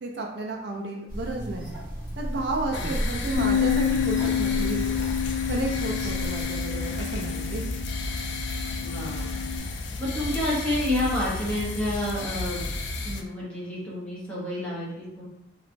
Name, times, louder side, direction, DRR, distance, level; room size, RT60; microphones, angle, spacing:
voice 1, 0.0-1.8 2.2-4.9 5.5-7.7, right 2 dB, 60° right, 0 dB, 0.4 m, -32 dB
sound 1, 1.1-6.5, equal, 50° left, 1.3 m, -34 dB
sound 2, 2.7-13.2, left 2 dB, 65° left, 0.3 m, -33 dB
voice 2, 2.7-3.0 8.8-9.6 10.0-12.7 13.0-15.3, left 1 dB, 5° left, -8 dB, 0.8 m, -30 dB
Bass guitar, 3.3-9.6, left 9 dB, 25° right, 0.9 m, -29 dB
2.9 x 2.3 x 2.5 m, 0.86 s
head